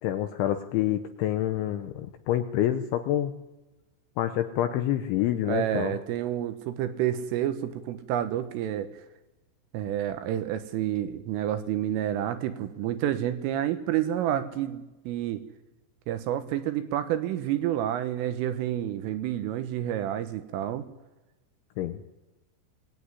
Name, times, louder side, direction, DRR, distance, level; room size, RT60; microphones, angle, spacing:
voice 1, 0.0-3.3 4.2-5.9 21.8-22.0, left 12 dB, 75° left, 8 dB, 3.1 m, -27 dB
voice 2, 5.5-8.9 9.7-15.4 16.1-20.9, right 11 dB, 80° right, 9 dB, 3.6 m, -29 dB
23.5 x 18.0 x 9.8 m, 1.1 s
omnidirectional pair, 5.9 m